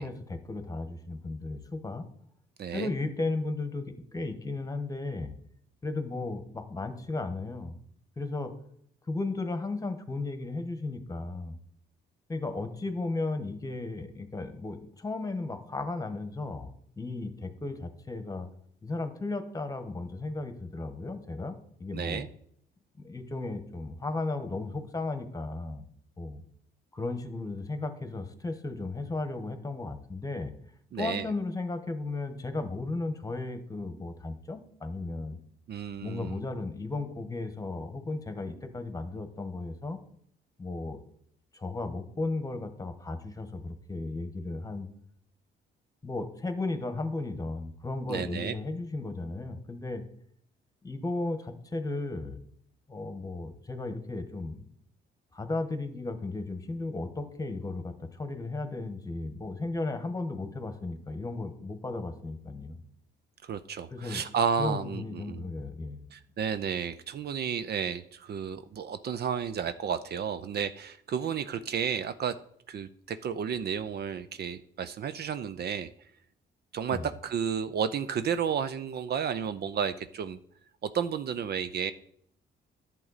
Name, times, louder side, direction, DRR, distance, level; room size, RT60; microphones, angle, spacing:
voice 1, 0.0-2.1 2.7-5.3 5.8-7.8 8.2-8.5 9.1-11.6 12.3-16.7 17.0-18.5 18.8-22.3 23.0-25.8 26.2-26.4 26.9-30.5 31.0-35.4 36.0-40.0 40.6-41.0 41.5-44.9 46.0-50.0 50.8-52.4 52.9-54.7 55.3-62.8 63.9-64.2 64.6-66.0 76.9-77.1, left 2 dB, 20° left, 8 dB, 1.2 m, -35 dB
voice 2, 2.6-2.9 21.9-22.3 30.9-31.3 35.7-36.4 48.1-48.5 63.4-65.4 66.1-72.4 72.7-75.9 76.7-80.4 80.8-81.9, right 7 dB, 55° right, 12 dB, 0.5 m, -32 dB
10.5 x 7.4 x 4.1 m, 0.67 s
cardioid pair, 90°, 20 cm